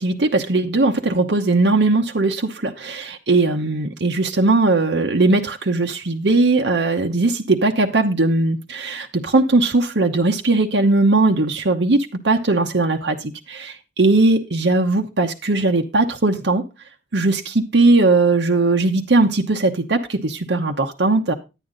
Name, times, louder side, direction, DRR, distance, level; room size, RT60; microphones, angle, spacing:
voice 1, 0.0-13.2 13.5-16.6 17.1-21.3, right 2 dB, 75° right, 1.0 m, -19 dB
10.0 x 9.3 x 3.9 m
head